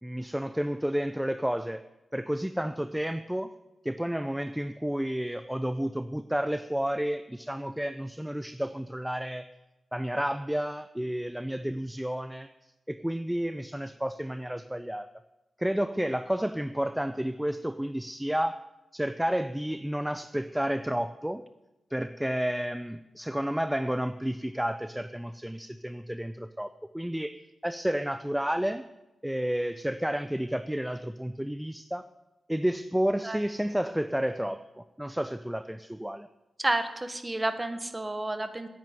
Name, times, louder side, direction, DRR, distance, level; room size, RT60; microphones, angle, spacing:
voice 1, 0.0-1.8 2.1-3.5 3.8-9.5 9.9-12.5 12.9-15.1 15.6-18.6 18.9-21.4 21.9-28.9 29.2-32.0 32.5-36.3, equal, 5° right, 11 dB, 0.5 m, -31 dB
voice 2, 36.6-38.7, right 2 dB, 20° right, 10 dB, 1.4 m, -30 dB
10.0 x 9.2 x 9.5 m, 1.0 s
wide cardioid pair, 90°, 0 cm